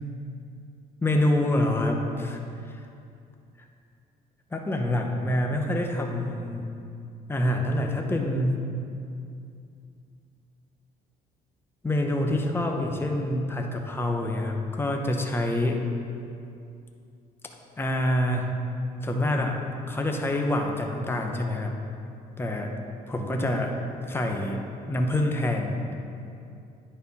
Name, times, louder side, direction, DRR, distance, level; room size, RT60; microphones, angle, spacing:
voice 1, 1.0-2.4 4.5-6.6 7.3-8.6 11.8-15.8 17.8-18.6 19.0-19.6 19.9-21.7 22.4-22.7 23.1-23.7 24.1-25.8, left 1 dB, 15° left, 2 dB, 0.8 m, -26 dB
9.4 x 4.4 x 5.3 m, 2.5 s
cardioid pair, 110°, 17 cm